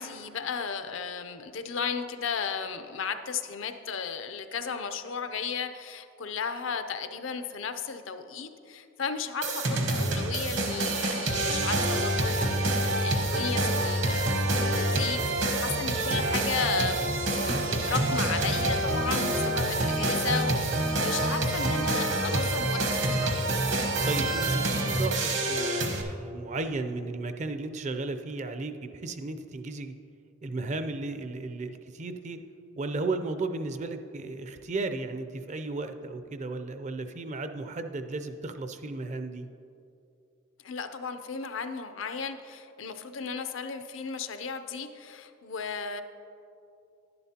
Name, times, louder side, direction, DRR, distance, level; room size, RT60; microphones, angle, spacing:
voice 1, 0.0-17.1 17.4-23.3 40.6-46.0, left 6 dB, 70° left, 9 dB, 0.5 m, -35 dB
sound 1, 9.4-26.0, right 1 dB, 65° right, 1.0 m, -27 dB
voice 2, 24.0-29.9 30.4-32.4 32.7-39.5, right 3 dB, 35° right, 8 dB, 0.4 m, -34 dB
11.0 x 10.5 x 2.8 m, 2.6 s
head